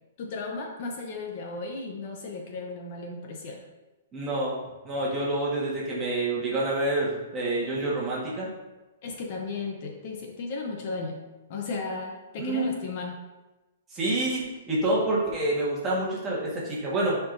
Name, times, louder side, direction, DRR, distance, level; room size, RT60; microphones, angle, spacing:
voice 1, 0.2-3.6 9.0-11.2 11.5-13.2, left 3 dB, 40° left, 2 dB, 0.7 m, -35 dB
voice 2, 4.1-4.6 4.8-8.5 12.4-12.8 13.9-17.2, right 2 dB, 15° right, -6 dB, 1.5 m, -27 dB
9.6 x 4.5 x 2.6 m, 1.1 s
hypercardioid pair, 170°, 0 cm